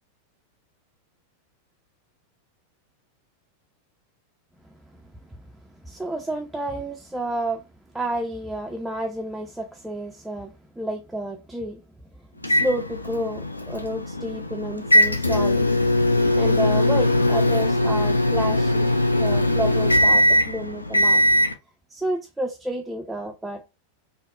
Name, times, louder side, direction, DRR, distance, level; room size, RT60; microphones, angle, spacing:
voice 1, 5.0-5.4 5.8-7.7 7.9-11.8 12.2-15.7 16.3-18.9 19.2-21.2 21.9-23.7, right 1 dB, 5° right, 0.4 m, -30 dB
sound 1, 12.4-21.5, left 1 dB, 85° left, 0.3 m, -20 dB
3.5 x 2.0 x 2.3 m
figure-of-eight pair, 90°, 0 cm